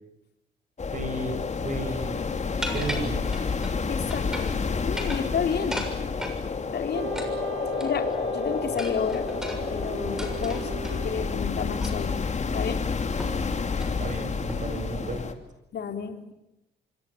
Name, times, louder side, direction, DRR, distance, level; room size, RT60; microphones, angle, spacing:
sound 1, 0.8-15.3, left 5 dB, 35° left, 2.8 m, -29 dB
voice 1, 0.9-2.2 2.7-3.3 13.8-15.3, right 2 dB, 40° right, 8 dB, 7.1 m, -34 dB
sound 2, 2.6-3.8 4.1-4.6 4.9-6.4 7.1-8.2 8.8-11.0 11.8-12.1 12.5-12.6 13.2-13.4 13.7-14.0 14.5-14.8, equal, 5° right, 6.8 m, -36 dB
voice 2, 3.9-4.6 4.8-5.9 6.6-7.2 7.8-9.3 9.7-12.2 12.5-12.8 15.7-16.3, left 7 dB, 55° left, 5 dB, 3.8 m, -31 dB
Wind instrument woodwind instrument, 6.9-12.0, right 5 dB, 65° right, 2.0 m, -39 dB
26.0 x 25.5 x 8.6 m, 0.90 s
cardioid pair, 90°, 20 cm